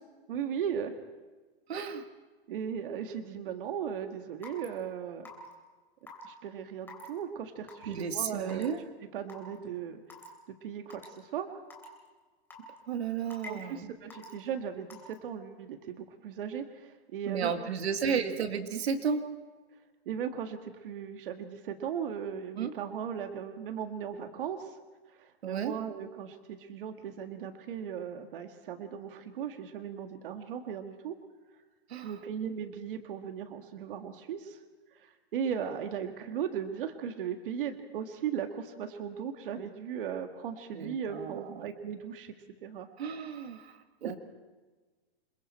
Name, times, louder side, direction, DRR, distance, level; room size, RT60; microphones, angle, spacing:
voice 1, 0.3-1.0 2.5-5.3 6.2-8.7 9.1-10.0 10.5-11.5 13.5-17.5 18.0-18.4 20.1-24.8 25.1-31.2 32.0-34.6 34.9-42.3 42.6-42.9, right 8 dB, 60° right, 6 dB, 1.9 m, -37 dB
voice 2, 1.7-2.0 7.9-8.8 12.9-13.9 17.3-19.2 22.6-22.7 25.4-25.7 31.9-32.1 40.7-41.7 43.0-44.2, right 6 dB, 90° right, 7 dB, 2.1 m, -33 dB
Raindrop / Water tap faucet / Drip, 4.4-4.7 5.3-5.5 6.1-6.2 6.9-7.1 7.7-7.9 8.5-8.7 9.3-9.4 10.1-10.3 10.9-11.0 11.7-11.9 12.5-12.8 13.3-13.6 14.1-14.3 14.9-15.1, left 4 dB, 5° left, 3.4 m, -47 dB
28.0 x 22.5 x 4.4 m, 1.3 s
hypercardioid pair, 165°, 31 cm